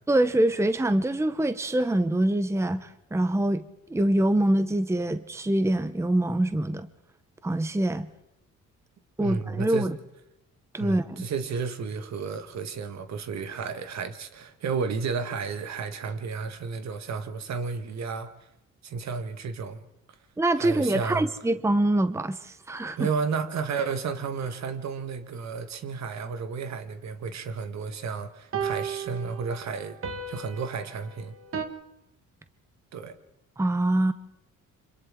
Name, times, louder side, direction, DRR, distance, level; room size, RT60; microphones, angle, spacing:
voice 1, 0.1-3.6 3.9-6.9 7.4-8.1 9.2-10.0 10.7-11.3 20.4-23.1 33.6-34.1, right 1 dB, 10° right, 0.9 m, -24 dB
voice 2, 9.2-9.9 10.8-18.3 18.8-19.8 20.6-21.3 23.0-30.0 30.3-31.4 32.9-33.1, right 5 dB, 65° right, 1.8 m, -32 dB
sound 1, 24.3-24.4 28.5-31.7, right 6 dB, 45° right, 1.8 m, -35 dB
29.0 x 25.5 x 3.7 m
cardioid pair, 90°, 30 cm